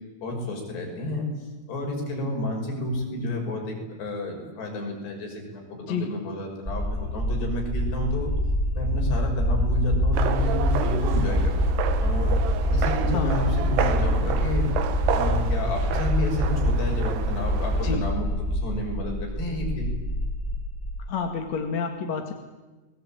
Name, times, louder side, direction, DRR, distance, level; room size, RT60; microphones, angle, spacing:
voice 1, 0.2-8.3 8.8-12.4 12.7-14.7 15.1-18.2 18.5-19.9, left 2 dB, 80° left, 1 dB, 8.0 m, -30 dB
sound 1, 6.7-21.1, equal, 5° left, 3.9 m, -25 dB
sound 2, 10.1-18.0, right 8 dB, 80° right, 3.6 m, -31 dB
voice 2, 21.1-22.3, left 5 dB, 50° left, 4 dB, 2.7 m, -29 dB
30.0 x 21.5 x 8.9 m, 1.2 s
omnidirectional pair, 4.7 m